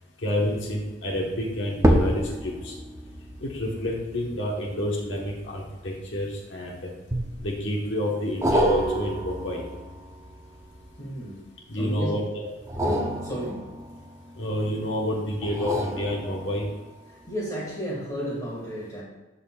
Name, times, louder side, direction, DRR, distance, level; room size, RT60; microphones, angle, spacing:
voice 1, 0.2-2.7 3.4-6.9 7.4-9.6 11.7-12.5 14.4-16.7, left 1 dB, 70° left, -2 dB, 1.2 m, -29 dB
sound 1, 0.5-0.9 1.7-6.4 7.1-7.7 8.4-11.4 12.6-14.7 15.4-16.8 17.3-17.4, equal, 15° right, 0.6 m, -29 dB
voice 2, 11.0-11.4 11.7-12.1 13.2-13.7 17.1-19.0, equal, 20° left, -5 dB, 1.8 m, -33 dB
12.0 x 4.2 x 2.4 m, 1.1 s
head